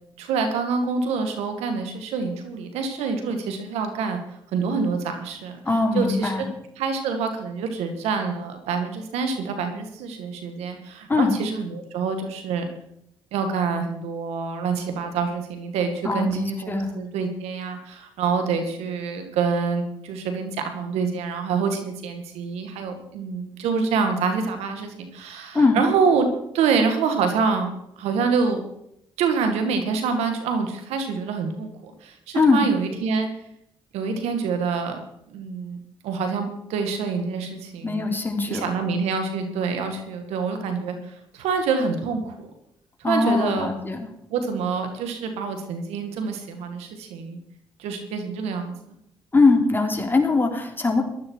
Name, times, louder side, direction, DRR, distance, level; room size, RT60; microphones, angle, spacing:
voice 1, 0.2-4.2 4.5-5.6 5.9-6.5 6.8-12.7 13.3-26.3 26.5-28.6 29.2-33.3 33.9-35.0 35.3-35.8 36.0-38.1 38.5-41.0 41.3-42.5 43.1-43.7 44.3-47.4 47.8-48.7, right 5 dB, 90° right, 6 dB, 2.0 m, -26 dB
voice 2, 5.6-6.5 11.1-11.3 16.0-16.9 25.5-25.8 32.3-32.6 37.8-38.7 43.0-44.1 49.3-51.0, left 3 dB, 20° left, 2 dB, 3.4 m, -21 dB
15.5 x 12.0 x 4.7 m, 0.77 s
supercardioid pair, 60°, 11 cm